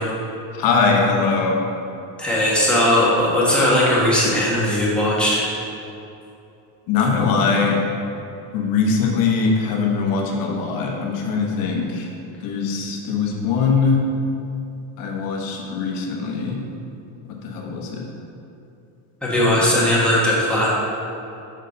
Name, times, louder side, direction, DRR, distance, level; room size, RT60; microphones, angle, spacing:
voice 1, 0.5-1.6 6.9-7.8 8.5-12.1 12.4-14.0 15.0-16.6 17.3-18.1 19.3-19.7, left 4 dB, 45° left, 0 dB, 1.0 m, -21 dB
voice 2, 2.2-5.5 19.2-20.7, left 1 dB, ahead, -7 dB, 1.0 m, -18 dB
6.5 x 4.2 x 5.2 m, 2.7 s
cardioid pair, 175°, 48 cm